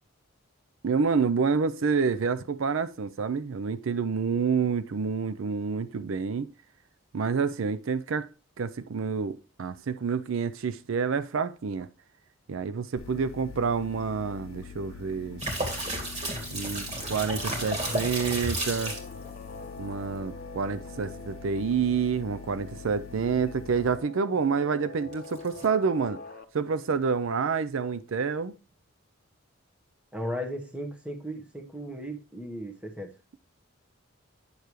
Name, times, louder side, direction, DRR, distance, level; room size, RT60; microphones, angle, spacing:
voice 1, 0.8-6.5 7.1-8.3 8.6-11.9 12.5-15.4 16.5-18.9 19.8-26.2 26.5-28.5, right 5 dB, 70° right, 0.5 m, -28 dB
sound 1, 13.0-24.0, left 6 dB, 75° left, 0.6 m, -44 dB
sound 2, 15.4-19.1 25.1-25.7, right 1 dB, 30° right, 2.2 m, -32 dB
Guitar, 17.0-26.4, left 2 dB, 40° left, 0.7 m, -45 dB
voice 2, 30.1-33.1, equal, 5° right, 1.0 m, -36 dB
9.5 x 6.7 x 3.1 m
head